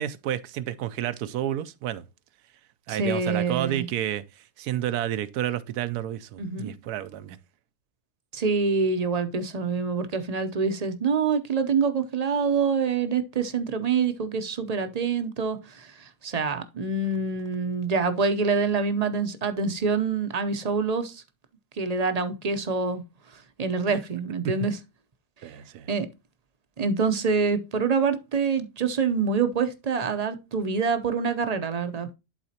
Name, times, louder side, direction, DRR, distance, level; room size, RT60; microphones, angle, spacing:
voice 1, 0.0-2.1 2.9-4.2 4.6-7.4 23.9-24.0 25.4-25.9, right 11 dB, 80° right, 1.1 m, -30 dB
voice 2, 2.9-3.9 6.4-6.7 8.3-15.9 16.2-21.2 21.8-23.0 23.6-24.8 25.9-26.1 26.8-32.1, right 5 dB, 40° right, 0.5 m, -26 dB
11.5 x 4.1 x 2.8 m
omnidirectional pair, 1.7 m